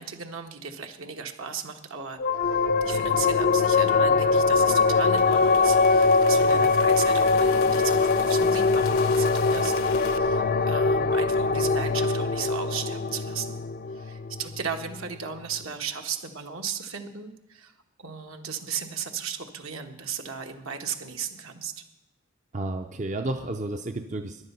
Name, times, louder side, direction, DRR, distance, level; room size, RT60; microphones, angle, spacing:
voice 1, 0.0-13.6 13.9-17.7 18.0-21.7, right 7 dB, 70° right, 4 dB, 1.3 m, -36 dB
sound 1, 2.2-15.1, left 4 dB, 40° left, 0.4 m, -22 dB
sound 2, 4.6-10.2, left 6 dB, 75° left, 0.8 m, -40 dB
voice 2, 22.5-24.4, right 2 dB, 35° right, 6 dB, 0.5 m, -31 dB
14.0 x 11.0 x 5.6 m, 0.91 s
head